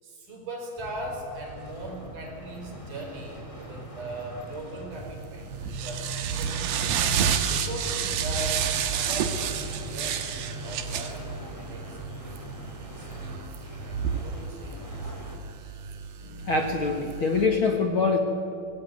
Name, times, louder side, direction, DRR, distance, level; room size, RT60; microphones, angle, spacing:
voice 1, 0.0-5.5 5.8-6.8 7.5-10.4 10.6-12.0 12.8-15.1, right 1 dB, 60° right, 1 dB, 6.1 m, -40 dB
sound 1, 0.8-15.4, right 1 dB, 10° left, 3.2 m, -41 dB
sound 2, 5.0-17.5, right 7 dB, 75° right, 3.1 m, -31 dB
voice 2, 16.2-18.2, left 4 dB, 45° left, 3 dB, 1.9 m, -24 dB
25.5 x 19.5 x 9.4 m, 2.6 s
omnidirectional pair, 4.2 m